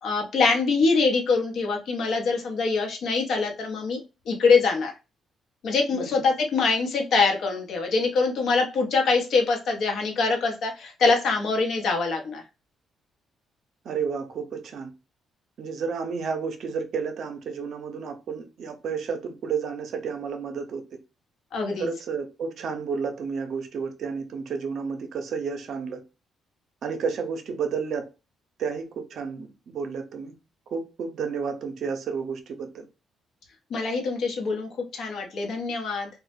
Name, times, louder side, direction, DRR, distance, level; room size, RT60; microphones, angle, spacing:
voice 1, 0.0-4.0 4.3-4.9 5.6-12.4 21.5-21.9 33.7-36.1, left 4 dB, 70° left, 0.7 m, -24 dB
voice 2, 5.9-6.3 13.8-14.9 15.6-20.8 21.8-26.0 26.8-28.1 28.6-29.5 29.7-30.3 30.7-32.9, right 5 dB, 65° right, 0.5 m, -31 dB
2.1 x 2.0 x 2.9 m
cardioid pair, 90°, 0 cm